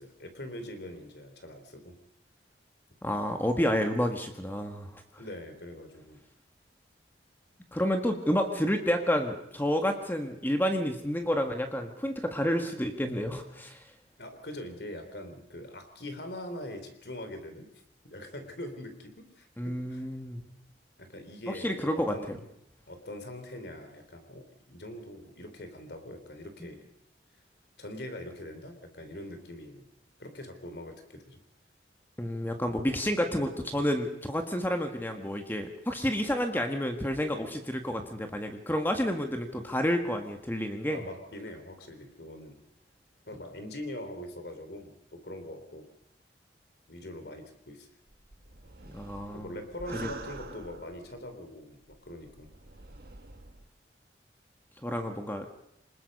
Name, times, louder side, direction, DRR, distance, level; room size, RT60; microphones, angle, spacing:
voice 1, 0.0-2.0 5.2-6.2 14.2-17.7 18.0-20.0 21.0-22.4 22.9-26.9 27.8-29.9 30.2-31.4 40.9-42.6 43.3-45.9 46.9-47.9 49.3-52.5, left 1 dB, 65° left, 7 dB, 3.3 m, -43 dB
voice 2, 3.0-5.0 7.7-13.8 19.6-20.4 21.5-22.1 32.2-41.0 48.9-49.5 49.9-50.1 54.8-55.5, equal, 10° left, 5 dB, 1.6 m, -30 dB
sound 1, 48.1-51.3 51.9-53.7, right 3 dB, 60° right, 1.5 m, -46 dB
25.5 x 20.5 x 5.4 m, 0.74 s
head